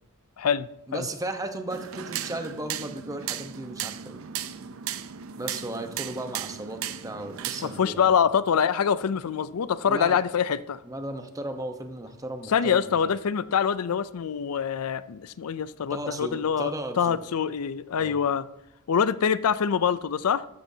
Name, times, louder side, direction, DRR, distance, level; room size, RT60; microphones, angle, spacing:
voice 1, 0.4-1.1 7.6-10.8 12.5-18.5 18.9-20.5, left 7 dB, 80° left, 0.4 m, -25 dB
voice 2, 0.9-4.2 5.4-8.1 9.8-10.2 10.8-12.9 15.9-17.2 18.0-18.2, right 1 dB, 15° right, 0.9 m, -35 dB
sound 1, 1.7-7.8, right 9 dB, 65° right, 0.6 m, -36 dB
14.0 x 13.0 x 2.8 m
head